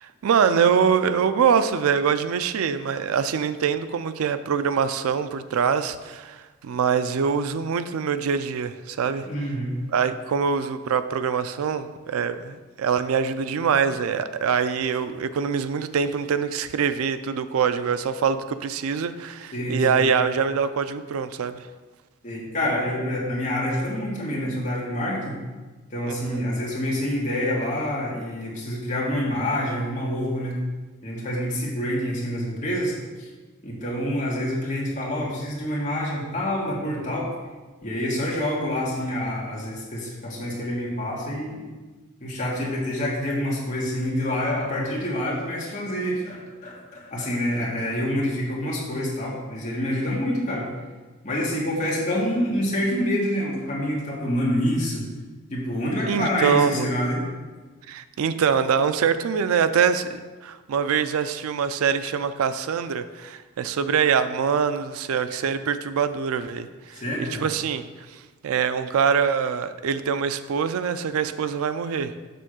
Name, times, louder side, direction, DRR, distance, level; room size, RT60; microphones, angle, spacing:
voice 1, 0.0-9.3 9.9-21.7 26.1-26.4 56.1-56.9 57.9-67.8 68.1-72.1, right 6 dB, 80° right, 12 dB, 0.4 m, -24 dB
voice 2, 9.2-9.8 19.5-20.1 22.2-25.4 25.9-30.6 31.0-33.3 33.6-37.3 37.8-41.6 42.2-50.7 51.2-55.0 55.5-57.2 66.9-67.4, equal, 35° left, -4 dB, 1.6 m, -27 dB
6.8 x 3.6 x 6.2 m, 1.3 s
head